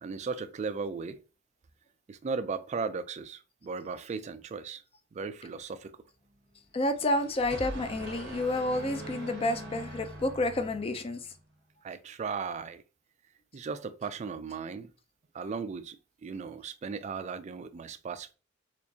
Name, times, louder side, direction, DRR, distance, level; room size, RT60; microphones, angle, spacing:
voice 1, 0.0-1.2 2.1-4.8 5.1-6.0 11.8-12.8 13.5-14.9 15.3-18.4, right 5 dB, 35° right, 0.3 m, -36 dB
voice 2, 6.7-11.2, left 1 dB, 30° left, 0.4 m, -30 dB
sound 1, 6.8-11.4, right 1 dB, 60° right, 1.0 m, -43 dB
4.4 x 2.4 x 2.7 m
head